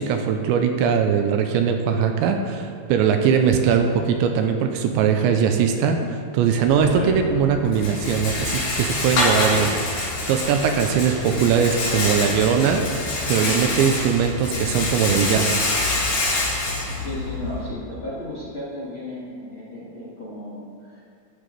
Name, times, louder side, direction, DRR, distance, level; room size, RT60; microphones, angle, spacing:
voice 1, 0.0-9.7 10.0-12.8 13.3-15.6, right 7 dB, 85° right, 5 dB, 2.9 m, -20 dB
Rattle, 6.6-17.7, left 2 dB, 65° left, 5.7 m, -26 dB
voice 2, 16.9-21.0, left 1 dB, 40° left, -8 dB, 2.0 m, -34 dB
14.5 x 11.5 x 3.4 m, 2.4 s
omnidirectional pair, 5.5 m